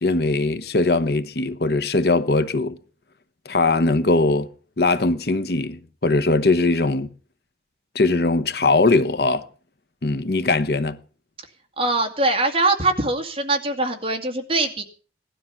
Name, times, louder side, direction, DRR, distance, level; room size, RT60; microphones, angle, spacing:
voice 1, 0.0-2.8 3.5-4.5 4.8-7.1 7.9-9.5 10.0-11.0, left 3 dB, 60° left, 0.9 m, -20 dB
voice 2, 11.8-14.8, right 2 dB, 30° right, 2.2 m, -22 dB
17.5 x 12.5 x 5.8 m
head